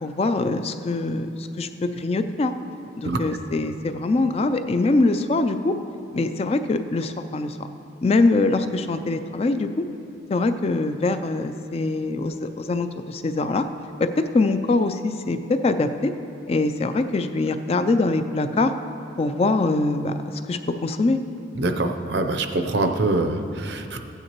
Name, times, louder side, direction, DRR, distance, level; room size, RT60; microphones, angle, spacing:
voice 1, 0.0-2.5 3.0-5.7 6.1-7.6 8.0-9.9 10.3-13.7 14.0-16.1 16.5-18.7 19.2-20.1 20.5-21.2, left 3 dB, 30° left, 9 dB, 0.3 m, -23 dB
voice 2, 21.6-24.1, right 2 dB, 60° right, 6 dB, 0.6 m, -24 dB
15.5 x 9.2 x 3.0 m, 2.6 s
head